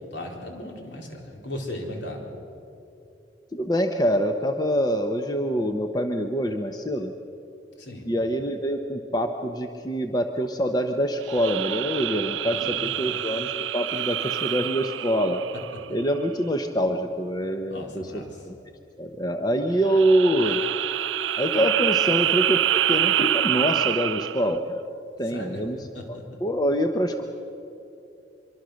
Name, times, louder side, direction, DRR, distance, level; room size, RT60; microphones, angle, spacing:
voice 1, 0.1-2.3 7.8-8.1 12.4-13.1 17.7-18.4 25.3-25.6 25.9-26.2, left 1 dB, 65° left, 0 dB, 4.1 m, -37 dB
voice 2, 3.5-7.1 8.0-15.4 15.9-18.5 19.0-20.6 21.4-24.8 25.2-27.2, equal, 20° left, 5 dB, 0.9 m, -25 dB
sound 1, 11.2-16.0 19.8-24.6, right 11 dB, 75° right, 0.4 m, -26 dB
25.0 x 23.5 x 6.5 m, 2.7 s
head